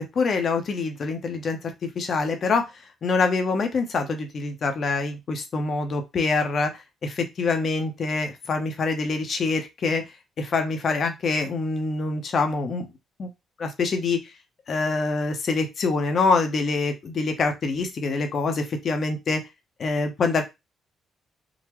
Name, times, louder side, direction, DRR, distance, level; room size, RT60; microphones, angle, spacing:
voice 1, 0.1-10.1 10.4-12.9 13.2-13.3 13.6-14.3 14.7-19.5 19.8-20.4, left 4 dB, 55° left, 6 dB, 0.8 m, -25 dB
3.8 x 2.1 x 3.1 m, 0.22 s
cardioid pair, 90°, 0 cm